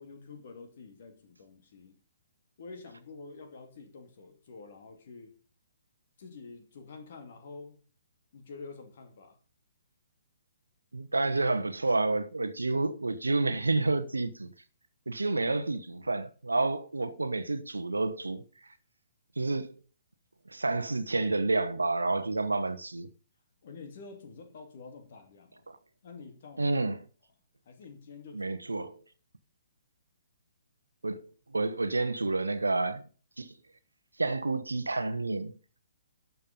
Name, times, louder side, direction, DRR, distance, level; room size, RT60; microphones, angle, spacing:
voice 1, 0.0-2.0 2.6-5.4 6.2-7.8 8.3-9.4 23.6-25.6 26.0-26.8 27.6-28.6, left 4 dB, 45° left, 2.7 m, -48 dB
voice 2, 10.9-14.5 15.1-18.4 19.4-19.7 20.5-23.1 25.7-25.8 26.6-27.0 28.3-29.0 31.0-33.0 33.4-33.5 34.2-35.5, right 3 dB, 75° right, 1.1 m, -29 dB
12.0 x 7.0 x 5.3 m
figure-of-eight pair, 125°, 0 cm